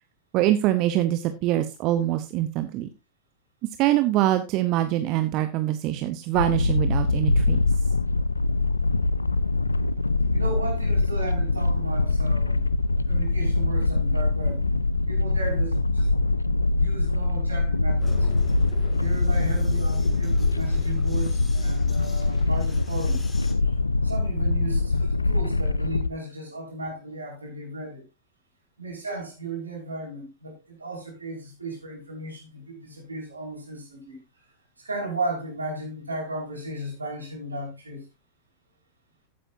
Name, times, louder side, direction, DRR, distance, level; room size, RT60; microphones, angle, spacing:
voice 1, 0.3-2.9 3.8-7.6, right 13 dB, 40° right, 0.9 m, -24 dB
sound 1, 6.3-26.1, left 3 dB, 80° left, 0.4 m, -23 dB
voice 2, 10.3-12.7 13.0-14.6 15.1-16.1 16.8-18.3 19.0-23.3 23.6-23.7 24.0-28.0 28.8-34.2 34.8-38.1, right 2 dB, 80° right, 5.7 m, -35 dB
Vehicle, 18.0-23.5, left 4 dB, 15° left, 1.9 m, -44 dB
15.0 x 8.9 x 2.7 m
figure-of-eight pair, 90°, 0 cm